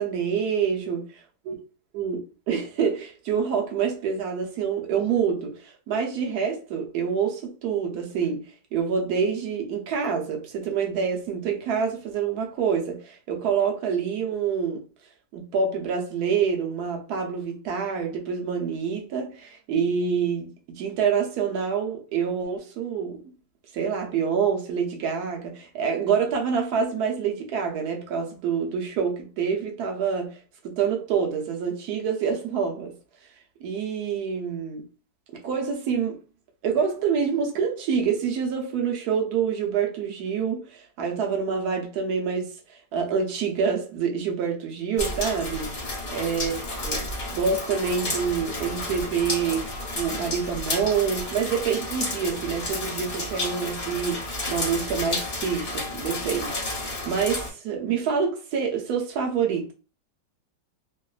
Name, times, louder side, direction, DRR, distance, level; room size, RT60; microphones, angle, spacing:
voice 1, 0.0-1.0 1.5-1.6 1.9-2.2 2.5-8.4 8.7-14.8 15.3-23.2 23.7-30.4 30.6-32.9 33.6-34.8 35.4-36.2 36.6-46.5 46.8-47.0 47.3-59.7, right 6 dB, 70° right, 1.1 m, -27 dB
sound 1, 45.0-57.5, left 2 dB, 50° left, 0.5 m, -31 dB
3.0 x 2.1 x 2.3 m
omnidirectional pair, 1.9 m